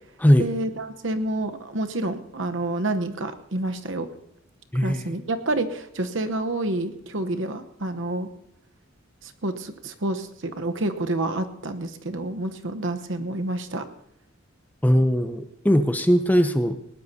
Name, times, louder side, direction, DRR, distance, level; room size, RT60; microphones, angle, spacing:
voice 1, 0.4-4.1 4.7-8.3 9.2-13.9, right 2 dB, 65° right, 8 dB, 1.0 m, -28 dB
voice 2, 4.7-5.1 14.8-16.8, equal, 10° left, 9 dB, 0.6 m, -19 dB
20.0 x 18.0 x 2.8 m, 0.80 s
head